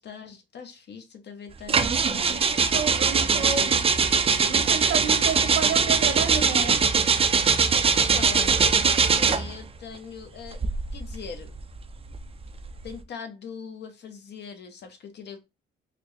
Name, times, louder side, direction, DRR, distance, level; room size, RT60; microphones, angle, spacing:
voice 1, 0.0-2.4 3.2-4.1 7.4-10.6 10.9-11.5 12.8-15.4, left 6 dB, 60° left, 0.9 m, -41 dB
sound 1, 1.7-9.6 10.4-12.9, right 5 dB, 30° right, 0.4 m, -22 dB
voice 2, 2.7-3.9 4.5-6.9, right 6 dB, 70° right, 1.0 m, -30 dB
4.2 x 2.0 x 3.2 m
cardioid pair, 90°, 20 cm